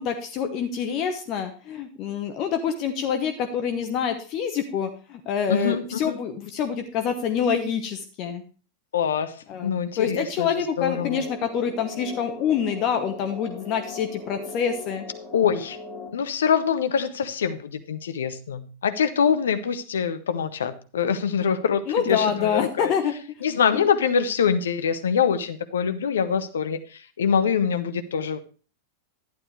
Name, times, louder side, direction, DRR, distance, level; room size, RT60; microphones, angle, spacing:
voice 1, 0.0-8.4 9.5-15.0 21.9-23.1 23.7-23.9, left 7 dB, 40° left, 7 dB, 1.0 m, -26 dB
voice 2, 5.5-6.2 8.9-11.2 15.3-15.8 16.1-22.9 23.4-28.4, left 7 dB, 65° left, 9 dB, 0.9 m, -24 dB
sound 1, 10.9-16.1, left 3 dB, ahead, 3.3 m, -39 dB
11.5 x 10.0 x 3.1 m, 0.36 s
figure-of-eight pair, 90°, 0 cm